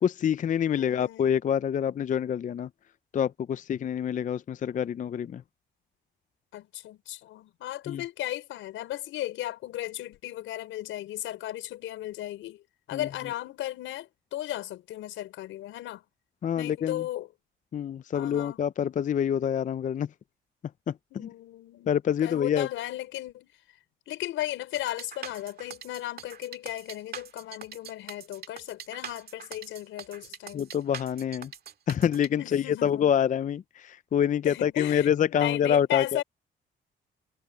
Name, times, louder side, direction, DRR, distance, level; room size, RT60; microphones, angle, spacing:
voice 1, 0.0-2.7 3.1-5.4 7.9-8.0 12.9-13.1 16.4-17.0 17.7-20.1 20.9-21.0 21.2-21.3 21.9-22.7 30.5-31.5 31.9-36.2, left 9 dB, 40° left, 0.5 m, -26 dB
voice 2, 0.7-1.4 6.5-12.6 12.9-16.0 16.6-17.3 18.1-18.6 21.1-21.9 22.2-23.5 24.1-30.7 32.4-33.1 34.4-36.2, left 14 dB, 90° left, 5.4 m, -36 dB
sound 1, 24.8-32.3, right 7 dB, 50° right, 2.2 m, -43 dB
cardioid pair, 90°, 20 cm